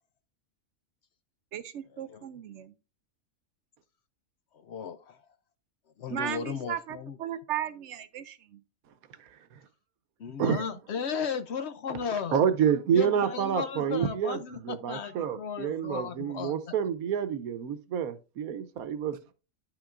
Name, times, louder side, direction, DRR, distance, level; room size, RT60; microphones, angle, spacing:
voice 1, 1.5-2.7 6.1-8.6, right 10 dB, 65° right, 0.8 m, -36 dB
voice 2, 4.5-5.2 6.0-7.2 10.2-12.4 12.9-16.7, left 6 dB, 60° left, 0.8 m, -35 dB
voice 3, 12.3-19.3, right 8 dB, 85° right, 1.2 m, -28 dB
10.5 x 5.9 x 2.5 m
omnidirectional pair, 1.5 m